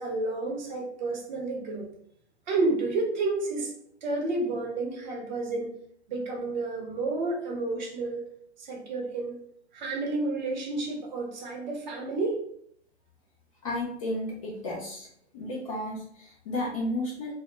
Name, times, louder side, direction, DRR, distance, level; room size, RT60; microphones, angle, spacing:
voice 1, 0.0-1.9 2.5-3.7 4.0-5.7 6.1-8.3 8.6-9.4 9.7-12.4, right 3 dB, 40° right, 0 dB, 0.7 m, -30 dB
voice 2, 13.6-15.1 15.3-17.3, left 1 dB, 30° left, -2 dB, 0.4 m, -33 dB
2.0 x 2.0 x 3.1 m, 0.67 s
hypercardioid pair, 135°, 35 cm